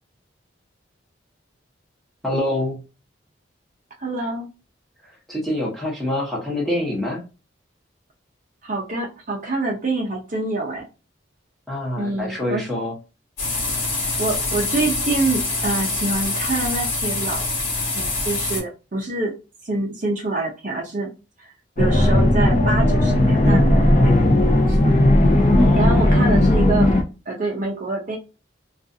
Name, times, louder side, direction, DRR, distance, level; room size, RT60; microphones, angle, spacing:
voice 1, 2.2-2.8 5.3-7.2 11.7-12.9 25.5-26.0, left 1 dB, ahead, -4 dB, 0.9 m, -25 dB
voice 2, 4.0-4.5 8.6-10.8 12.0-12.6 14.2-17.5 17.9-19.3 19.6-21.1 21.4-24.8 25.8-26.9 27.3-28.2, right 2 dB, 40° right, 0 dB, 0.5 m, -26 dB
sound 1, 13.4-18.6, left 3 dB, 80° left, 1.3 m, -25 dB
sound 2, 21.8-27.0, left 1 dB, 40° left, 0.5 m, -16 dB
2.5 x 2.3 x 2.5 m, 0.30 s
head